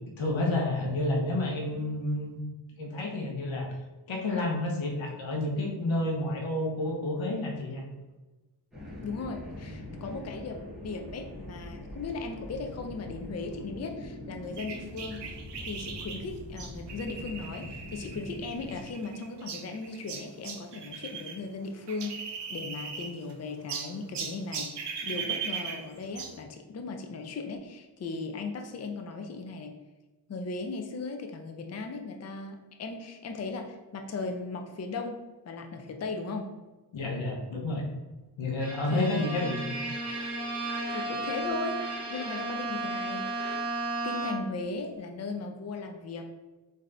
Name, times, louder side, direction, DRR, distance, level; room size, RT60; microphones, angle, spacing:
voice 1, 0.2-2.4 2.8-3.7 4.1-7.8 36.9-37.9 38.4-39.5, left 1 dB, 90° left, 0 dB, 0.9 m, -30 dB
sound 1, 8.7-18.8, left 1 dB, ahead, 1.4 m, -43 dB
voice 2, 9.0-29.7 30.3-36.5 38.9-39.4 40.9-43.7 44.0-46.3, left 3 dB, 35° left, 4 dB, 0.5 m, -37 dB
sound 2, 14.6-21.4 21.7-23.3 23.7-26.4, right 6 dB, 65° right, 0.7 m, -39 dB
Bowed string instrument, 38.6-44.7, right 2 dB, 30° right, 1.1 m, -34 dB
3.7 x 2.7 x 3.3 m, 1.2 s
cardioid pair, 60°, 45 cm